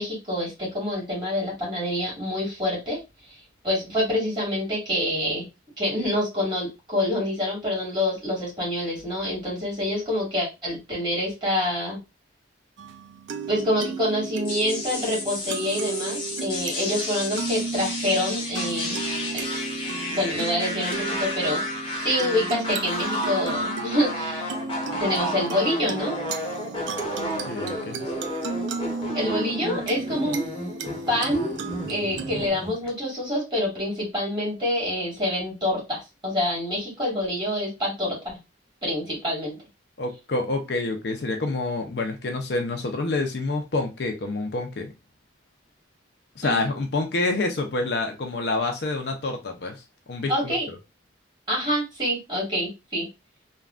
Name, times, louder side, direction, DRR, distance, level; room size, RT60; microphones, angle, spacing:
voice 1, 0.0-3.0 3.3-3.4 3.6-5.5 5.8-12.0 13.5-19.0 19.3-19.4 20.1-24.5 24.9-26.2 29.1-30.4 31.1-31.5 31.9-38.4 38.8-39.6 46.4-46.7 50.3-50.7 51.5-53.1, left 1 dB, 25° right, -4 dB, 1.8 m, -26 dB
sound 1, 12.8-32.5, right 4 dB, 75° right, 0.4 m, -34 dB
sound 2, 14.4-32.9, left 1 dB, 25° left, 0.8 m, -32 dB
voice 2, 27.5-28.1 40.0-44.9 46.4-49.8 50.1-50.8, left 2 dB, 60° left, 4 dB, 0.5 m, -27 dB
3.4 x 2.3 x 2.4 m, 0.25 s
head